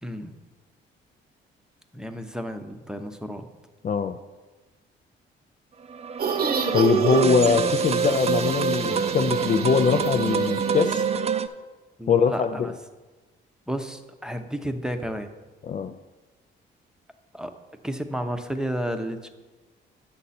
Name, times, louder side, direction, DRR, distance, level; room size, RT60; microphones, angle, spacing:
voice 1, 0.0-0.3 1.9-3.5 12.0-12.7 13.7-15.3 17.3-17.5 17.8-19.3, equal, 5° right, 6 dB, 0.7 m, -32 dB
voice 2, 3.8-4.2 6.7-11.0 12.1-12.7 15.6-16.0, left 6 dB, 40° left, 6 dB, 0.4 m, -22 dB
sound 1, 5.9-11.5, right 6 dB, 30° right, 0.5 m, -26 dB
sound 2, 6.2-11.1, right 6 dB, 50° right, 0.9 m, -29 dB
9.7 x 6.6 x 4.2 m, 1.2 s
cardioid pair, 90°, 20 cm